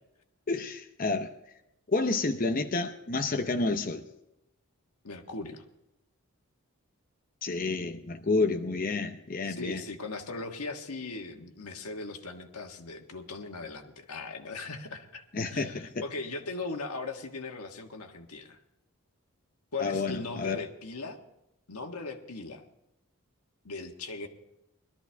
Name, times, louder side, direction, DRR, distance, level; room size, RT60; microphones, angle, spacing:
voice 1, 0.5-1.3 1.9-4.0 7.4-9.8 15.3-15.9 19.8-20.6, left 3 dB, 40° left, 5 dB, 0.7 m, -29 dB
voice 2, 5.0-5.6 9.4-18.6 19.7-21.2 21.7-22.6 23.6-24.3, left 3 dB, 90° left, 4 dB, 1.5 m, -39 dB
21.5 x 13.0 x 3.5 m, 0.86 s
head